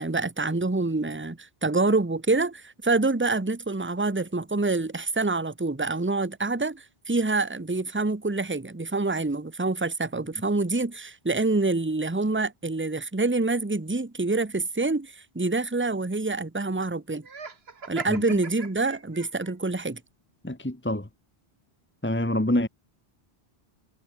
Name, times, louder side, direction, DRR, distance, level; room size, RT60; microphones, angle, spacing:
voice 1, 0.0-17.3 17.9-20.0, right 3 dB, 10° right, 1.1 m, -26 dB
Laughter, 17.2-19.5, right 5 dB, 70° right, 1.9 m, -40 dB
voice 2, 18.1-18.4 20.4-21.1 22.0-22.7, left 1 dB, 10° left, 1.5 m, -26 dB
omnidirectional pair, 1.1 m